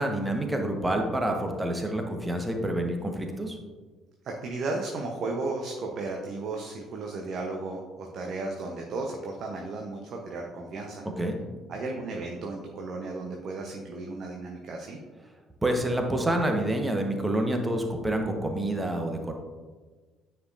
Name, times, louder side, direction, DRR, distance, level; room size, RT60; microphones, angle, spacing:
voice 1, 0.0-3.6 11.2-11.3 15.6-19.3, right 1 dB, 15° right, 4 dB, 1.1 m, -28 dB
voice 2, 4.2-11.1 11.7-15.0, right 3 dB, 55° right, 1 dB, 0.7 m, -34 dB
9.3 x 4.6 x 2.5 m, 1.3 s
figure-of-eight pair, 50°, 0 cm